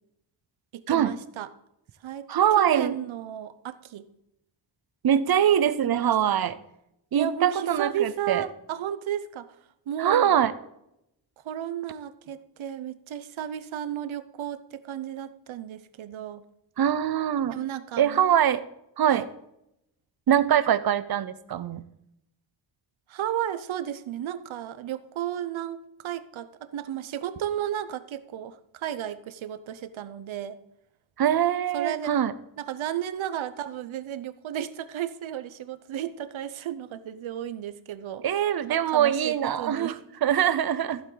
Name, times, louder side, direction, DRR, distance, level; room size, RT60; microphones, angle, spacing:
voice 1, 0.7-1.5 2.0-2.3 2.6-4.1 5.8-6.5 7.1-9.5 9.9-10.4 11.4-16.4 17.5-18.2 19.1-19.3 23.1-30.6 31.7-32.2 32.6-38.2 38.7-40.0, right 10 dB, 80° right, 13 dB, 0.8 m, -33 dB
voice 2, 2.3-2.9 5.0-6.6 7.1-8.4 10.0-10.5 16.8-17.6 18.0-18.6 19.0-19.2 20.3-21.8 31.2-32.3 38.2-39.9 40.2-41.0, right 10 dB, 50° right, 15 dB, 0.6 m, -23 dB
14.5 x 8.1 x 3.9 m, 0.82 s
wide cardioid pair, 165°, 47 cm